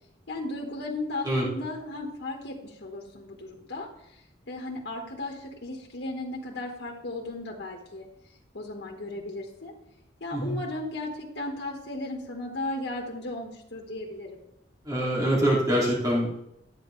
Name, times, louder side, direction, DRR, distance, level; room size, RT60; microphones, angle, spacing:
voice 1, 0.3-4.2 4.5-8.1 8.5-9.7 10.2-14.4, left 2 dB, 85° left, -1 dB, 1.5 m, -35 dB
voice 2, 14.9-16.4, equal, 20° right, -5 dB, 2.5 m, -24 dB
12.5 x 8.7 x 3.3 m, 0.80 s
head